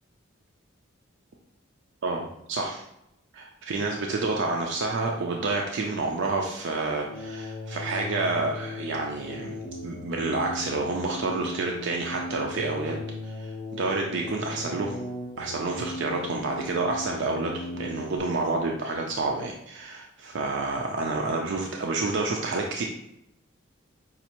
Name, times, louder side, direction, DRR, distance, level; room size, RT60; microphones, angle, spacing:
voice 1, 2.0-2.8 3.3-9.6 9.8-13.0 13.2-15.0 15.4-22.8, right 3 dB, 60° right, 0 dB, 0.4 m, -29 dB
sound 1, 6.9-18.2, left 2 dB, 30° left, 0.4 m, -37 dB
5.2 x 2.4 x 2.9 m, 0.79 s
head